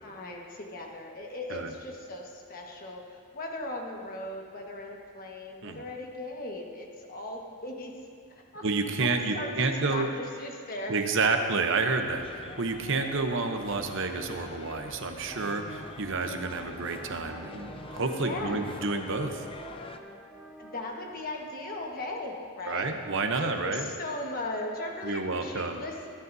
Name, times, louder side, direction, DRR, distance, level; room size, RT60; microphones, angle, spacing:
voice 1, 0.0-7.9 8.3-8.6 9.0-10.9 18.2-18.7 20.6-22.9 23.3-26.1, left 2 dB, 40° left, 0 dB, 1.4 m, -38 dB
voice 2, 8.6-10.1 10.9-19.4 22.6-23.9 25.0-25.8, right 3 dB, 55° right, 5 dB, 0.9 m, -29 dB
sound 1, 12.0-20.0, left 2 dB, 25° left, 0.5 m, -44 dB
sound 2, 15.3-21.1, equal, 5° right, 1.1 m, -50 dB
21.5 x 10.5 x 2.7 m, 2.2 s
head